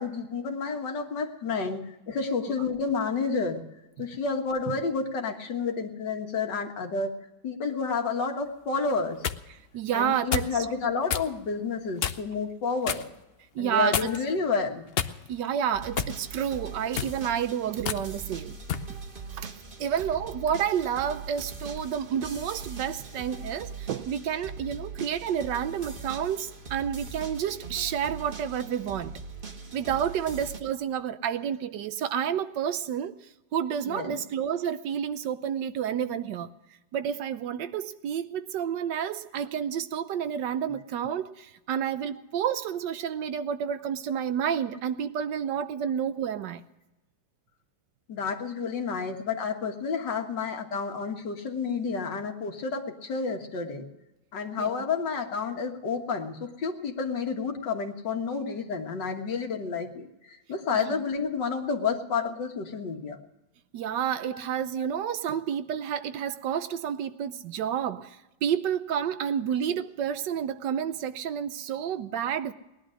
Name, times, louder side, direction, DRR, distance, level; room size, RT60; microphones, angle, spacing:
voice 1, 0.0-3.6 4.0-7.1 7.4-9.2 9.9-13.0 13.6-14.8 33.9-34.2 48.1-53.9 54.3-63.2 64.3-64.4, left 5 dB, 80° left, 2.2 m, -30 dB
sound 1, 8.9-9.4 10.3-10.6 11.1-11.3 12.0-12.3 12.8-13.1 13.9-14.3 14.9-15.5 16.0-16.2 16.8-17.2 17.8-18.0 18.7-18.9, left 8 dB, 60° left, 0.6 m, -30 dB
voice 2, 9.7-10.7 13.5-14.1 15.3-18.6 18.9-19.0 19.3-19.5 19.8-29.2 29.7-33.1 33.5-36.5 36.9-46.6 54.6-54.8 60.9-61.0 63.7-72.5, right 8 dB, 80° right, 1.4 m, -30 dB
sound 2, 15.7-30.6, right 4 dB, 35° right, 1.3 m, -41 dB
19.5 x 11.0 x 6.3 m
omnidirectional pair, 1.9 m